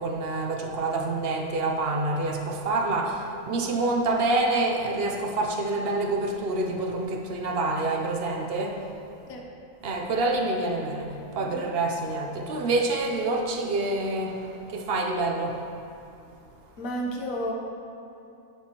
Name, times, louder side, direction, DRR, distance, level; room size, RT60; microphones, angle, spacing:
voice 1, 0.0-8.8 9.8-15.6, right 2 dB, 55° right, 2 dB, 0.8 m, -27 dB
voice 2, 16.8-17.5, equal, 80° left, 0 dB, 1.3 m, -32 dB
8.4 x 7.2 x 3.0 m, 2.6 s
omnidirectional pair, 1.4 m